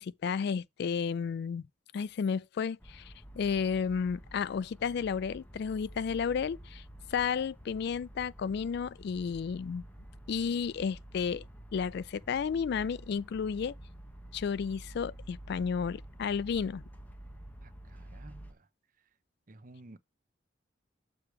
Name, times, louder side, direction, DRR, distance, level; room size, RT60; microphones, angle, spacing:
voice 1, 0.0-1.6 1.9-6.8 7.1-9.8 10.3-11.4 11.7-13.7 14.3-16.8, left 6 dB, 60° left, 0.3 m, -32 dB
sound 1, 2.8-18.5, right 1 dB, 10° left, 0.9 m, -49 dB
voice 2, 17.6-18.7 19.5-20.0, right 2 dB, 45° right, 0.7 m, -53 dB
6.8 x 4.8 x 4.7 m
head